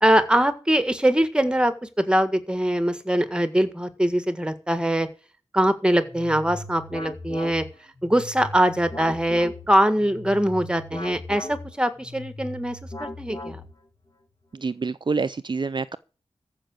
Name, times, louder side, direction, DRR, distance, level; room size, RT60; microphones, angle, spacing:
voice 1, 0.0-5.1 5.5-7.6 8.0-13.6, right 1 dB, 10° right, 1.7 m, -22 dB
sound 1, 6.0-14.0, left 2 dB, 35° left, 2.6 m, -38 dB
voice 2, 14.5-16.0, right 4 dB, 45° right, 0.5 m, -27 dB
14.5 x 5.8 x 7.8 m
wide cardioid pair, 95°, 11 cm